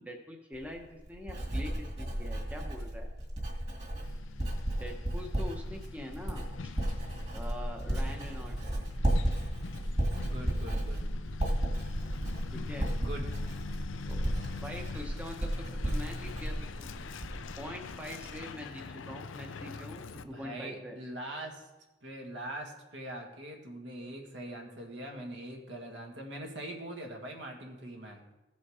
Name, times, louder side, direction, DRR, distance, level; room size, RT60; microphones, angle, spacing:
voice 1, 0.0-3.1 4.8-6.5 6.9-8.8 12.5-13.0 14.1-14.3 14.6-16.9 17.6-21.0, left 1 dB, 5° right, 1 dB, 0.8 m, -44 dB
Writing, 0.5-17.6 17.9-18.3, right 1 dB, 35° right, 2.1 m, -34 dB
Truck, 4.0-20.2, left 4 dB, 85° left, 0.5 m, -44 dB
voice 2, 10.2-11.0 13.0-13.3 20.3-21.6 22.0-28.3, right 1 dB, 70° right, 2 dB, 1.7 m, -42 dB
15.5 x 5.2 x 4.9 m, 1.0 s
head